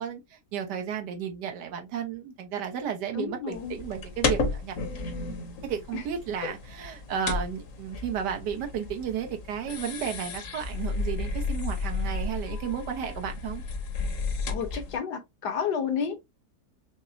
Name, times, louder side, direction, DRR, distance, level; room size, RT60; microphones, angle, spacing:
voice 1, 0.0-4.7 5.6-13.6, right 8 dB, 80° right, 1.4 m, -33 dB
voice 2, 3.1-3.7 5.9-6.0 6.4-6.5 14.5-16.2, left 7 dB, 75° left, 1.4 m, -31 dB
sound 1, 3.5-15.0, left 4 dB, 60° left, 1.1 m, -33 dB
5.8 x 2.1 x 2.5 m
omnidirectional pair, 1.8 m